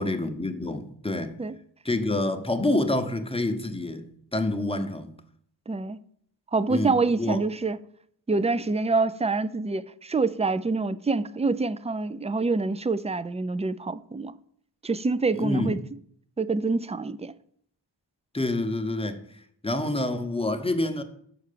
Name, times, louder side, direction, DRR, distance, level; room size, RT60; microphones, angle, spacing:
voice 1, 0.0-1.4 1.8-5.2 6.7-7.4 15.3-15.8 18.3-21.0, left 2 dB, 15° left, 0.8 m, -28 dB
voice 2, 5.7-6.0 6.5-7.8 8.3-14.3 14.8-15.8 16.4-17.3, right 3 dB, 15° right, 0.3 m, -26 dB
6.5 x 4.6 x 6.7 m
wide cardioid pair, 45°, 44 cm